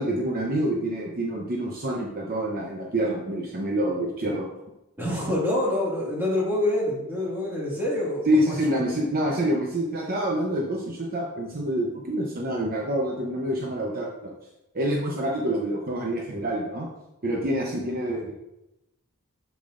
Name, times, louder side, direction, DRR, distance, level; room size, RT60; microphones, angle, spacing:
voice 1, 0.0-4.4 8.3-14.3 14.7-16.9 17.2-18.3, right 1 dB, 40° right, -1 dB, 0.8 m, -27 dB
voice 2, 5.0-8.3, left 1 dB, 10° right, -6 dB, 2.2 m, -26 dB
7.2 x 6.9 x 2.6 m, 0.92 s
head